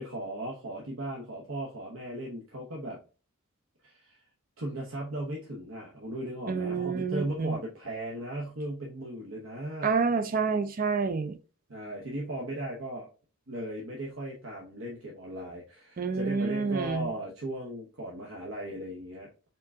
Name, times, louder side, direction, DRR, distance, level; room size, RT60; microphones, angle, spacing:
voice 1, 0.0-3.0 3.8-4.2 4.6-9.9 11.7-13.1 13.5-19.3, right 1 dB, 60° right, 0.9 m, -37 dB
voice 2, 6.5-7.6 9.8-11.4 16.0-17.1, right 5 dB, 40° right, 0.4 m, -28 dB
4.5 x 3.7 x 2.7 m
head